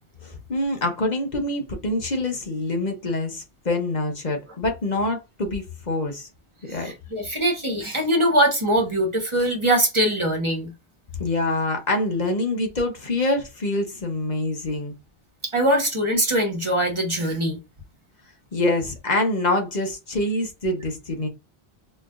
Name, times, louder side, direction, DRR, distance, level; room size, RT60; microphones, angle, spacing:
voice 1, 0.2-6.3 6.7-6.9 11.2-14.9 18.5-21.3, left 2 dB, 45° left, 1.1 m, -25 dB
voice 2, 6.7-10.7 15.5-17.6, right 1 dB, 30° right, 1.3 m, -22 dB
4.4 x 2.9 x 2.5 m
omnidirectional pair, 1.0 m